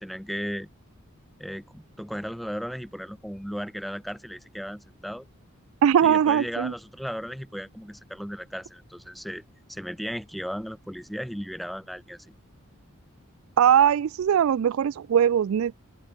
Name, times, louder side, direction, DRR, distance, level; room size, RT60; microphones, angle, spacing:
voice 1, 0.0-0.7 1.4-5.3 6.0-9.4 9.7-12.3, equal, ahead, 1.4 m, -35 dB
voice 2, 5.8-6.7 13.6-15.7, right 9 dB, 70° right, 0.3 m, -20 dB
open air
head